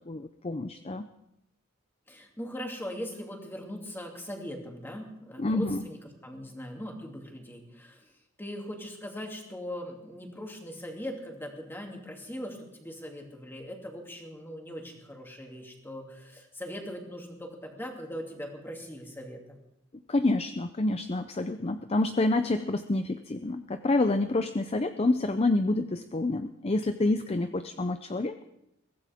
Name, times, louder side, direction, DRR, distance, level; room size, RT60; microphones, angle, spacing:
voice 1, 0.1-1.1 5.4-5.8 20.1-28.4, left 2 dB, 30° left, 9 dB, 0.5 m, -28 dB
voice 2, 2.1-8.1 8.4-19.6, equal, 10° left, 1 dB, 2.7 m, -40 dB
22.5 x 16.5 x 3.6 m, 0.83 s
head